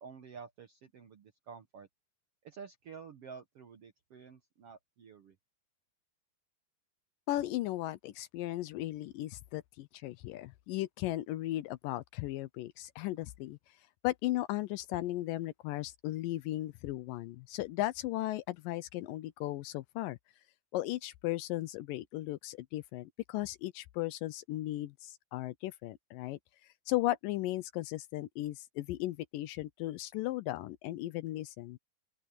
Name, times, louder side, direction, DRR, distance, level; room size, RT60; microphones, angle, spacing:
voice 1, 0.0-1.9 2.4-5.4, right 6 dB, 65° right, 1.5 m, -50 dB
voice 2, 7.3-13.6 14.0-20.2 20.7-26.4 26.9-31.8, left 16 dB, 80° left, 2.2 m, -36 dB
open air
omnidirectional pair, 4.2 m